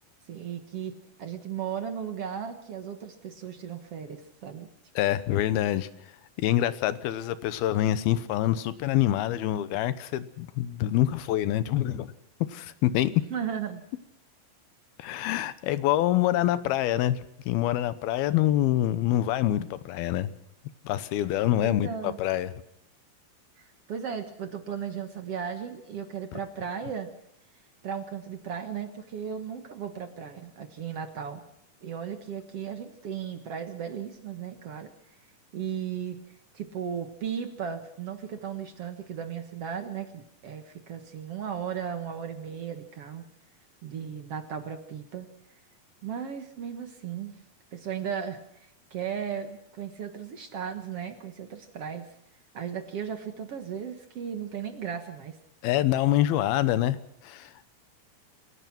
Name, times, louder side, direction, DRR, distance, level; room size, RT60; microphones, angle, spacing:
voice 1, 0.3-4.7 13.3-13.8 21.6-22.2 23.6-27.1 27.8-31.4 31.8-34.9 35.5-36.2 36.5-43.3 43.8-45.3 46.0-47.3 47.7-52.1 52.5-55.4, right 8 dB, 55° right, 1.8 m, -36 dB
voice 2, 5.0-5.9 6.4-12.1 12.5-13.1 15.0-20.3 20.8-22.5 55.6-57.5, left 13 dB, 80° left, 2.8 m, -26 dB
28.0 x 16.5 x 6.0 m
omnidirectional pair, 4.4 m